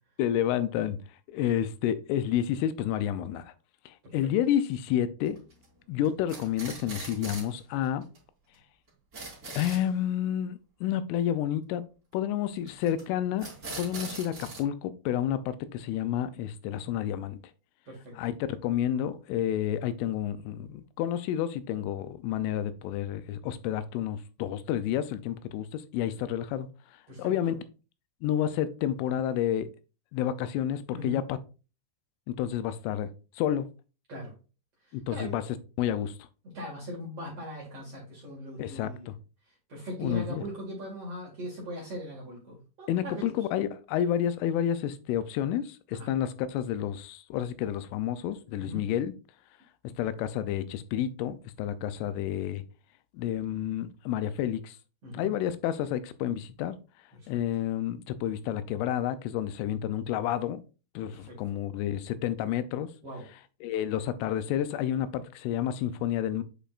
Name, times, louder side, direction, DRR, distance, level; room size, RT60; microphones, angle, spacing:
voice 1, 0.2-1.0 1.3-3.5 3.9-5.4 5.9-8.0 9.5-11.8 12.1-13.5 13.8-17.4 18.2-26.7 27.2-27.5 28.2-29.7 30.1-31.4 32.3-33.1 33.4-33.7 34.9-35.4 35.8-36.1 38.6-39.1 40.0-40.4 42.9-49.1 49.8-52.6 53.1-54.8 55.1-56.8 57.3-60.6 61.0-62.9 63.6-66.4, left 10 dB, 90° left, 3.2 m, -30 dB
sound 1, 5.2-5.6 6.0-7.6 7.8-7.9 8.1-8.2 8.5-8.6 8.9-9.8 12.7-13.0 13.4-14.6, right 3 dB, 20° right, 2.9 m, -41 dB
voice 2, 34.8-35.4 36.4-39.1 39.7-43.3 45.9-46.1 48.6-48.9 55.0-55.3 57.1-57.4 61.1-61.4 63.0-63.2, equal, 50° right, 2.0 m, -40 dB
8.6 x 5.1 x 2.5 m
omnidirectional pair, 5.6 m